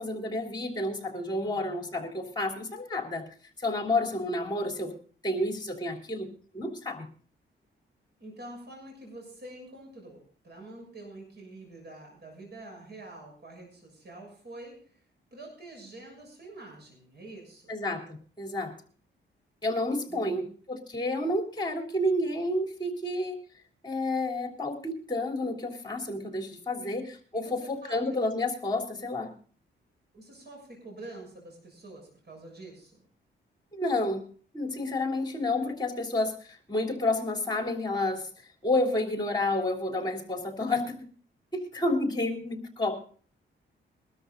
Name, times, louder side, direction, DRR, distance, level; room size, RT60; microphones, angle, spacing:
voice 1, 0.0-3.3 3.6-5.0 5.2-7.1 17.7-18.8 19.6-23.4 23.8-29.3 33.7-34.3 34.5-41.0 41.5-43.0, left 2 dB, 20° left, 2 dB, 3.4 m, -30 dB
voice 2, 1.4-2.0 8.2-17.7 20.1-20.5 26.8-27.0 27.3-28.0 30.1-33.0, right 2 dB, 55° right, 1 dB, 6.9 m, -47 dB
23.0 x 13.0 x 2.6 m, 0.43 s
cardioid pair, 110°, 20 cm